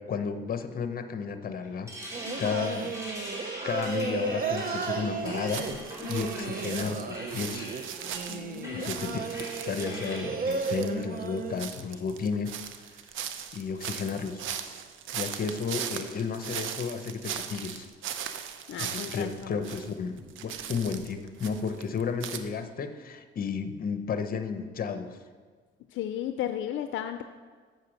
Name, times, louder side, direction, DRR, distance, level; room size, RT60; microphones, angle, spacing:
voice 1, 0.0-2.0 2.4-2.9 3.6-5.7 6.1-7.7 8.7-12.5 13.5-14.4 15.1-17.9 18.8-25.2, left 5 dB, 45° left, 9 dB, 0.8 m, -33 dB
sound 1, 1.6-10.6, equal, 15° right, 2.8 m, -42 dB
Singing, 2.1-11.6, right 5 dB, 45° right, 0.7 m, -34 dB
voice 2, 2.2-2.6 6.0-6.5 8.3-9.2 18.7-19.6 25.9-27.2, left 11 dB, 75° left, 9 dB, 0.4 m, -36 dB
sound 2, 5.4-10.2 10.6-19.9 20.2-22.4, right 9 dB, 80° right, 0.6 m, -39 dB
7.6 x 6.6 x 6.3 m, 1.5 s
cardioid pair, 90°, 20 cm